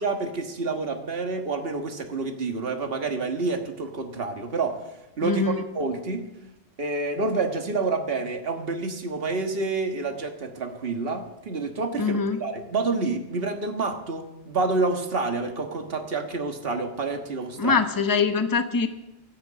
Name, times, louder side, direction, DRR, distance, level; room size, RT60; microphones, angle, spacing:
voice 1, 0.0-4.8 5.2-6.2 6.8-17.8, right 3 dB, 50° right, 4 dB, 1.8 m, -28 dB
voice 2, 5.2-5.6 12.0-12.4 17.6-18.9, left 5 dB, 20° left, 8 dB, 0.8 m, -23 dB
14.0 x 8.8 x 8.5 m, 0.95 s
omnidirectional pair, 1.3 m